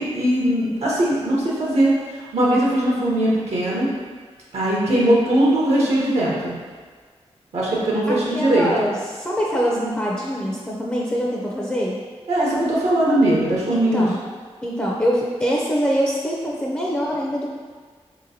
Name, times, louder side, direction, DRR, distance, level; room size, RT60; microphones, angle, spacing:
voice 1, 0.0-1.9 2.3-3.9 4.5-6.5 7.5-8.7 12.3-14.1, right 1 dB, 75° right, -5 dB, 0.7 m, -20 dB
voice 2, 8.1-12.0 13.7-14.3 14.6-17.5, equal, 15° left, -4 dB, 0.4 m, -24 dB
3.3 x 2.9 x 2.7 m, 1.6 s
cardioid pair, 55°, 11 cm